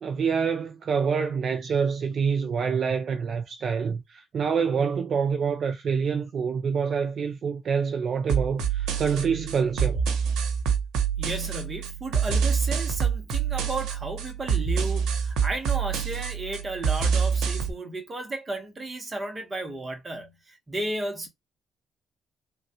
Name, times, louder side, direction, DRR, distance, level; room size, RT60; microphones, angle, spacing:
voice 1, 0.0-10.0, right 6 dB, 50° right, 0.4 m, -26 dB
sound 1, 8.3-17.7, right 7 dB, 85° right, 0.8 m, -26 dB
voice 2, 11.2-21.3, right 2 dB, 25° right, 0.9 m, -34 dB
3.4 x 2.3 x 2.7 m
cardioid pair, 105°, 0 cm